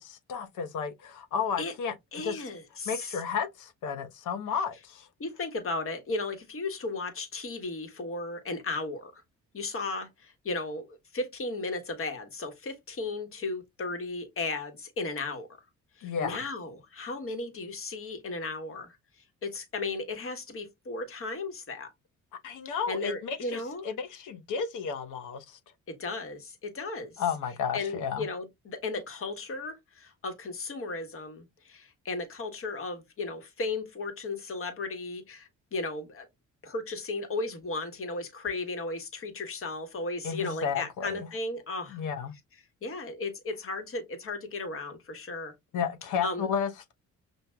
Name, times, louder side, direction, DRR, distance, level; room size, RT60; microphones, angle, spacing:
voice 1, 0.0-2.4 2.9-5.1 16.0-16.4 22.4-25.6 27.2-28.3 40.2-41.3 41.9-42.3 45.7-46.9, left 6 dB, 85° left, 0.9 m, -33 dB
voice 2, 2.1-3.2 5.2-9.1 9.5-15.5 16.0-19.0 19.4-21.9 22.9-23.9 26.0-27.2 27.7-36.2 36.6-42.0 42.8-45.5 46.2-46.5, left 3 dB, 45° left, 1.4 m, -35 dB
6.2 x 2.5 x 2.2 m
cardioid pair, 90°, 30 cm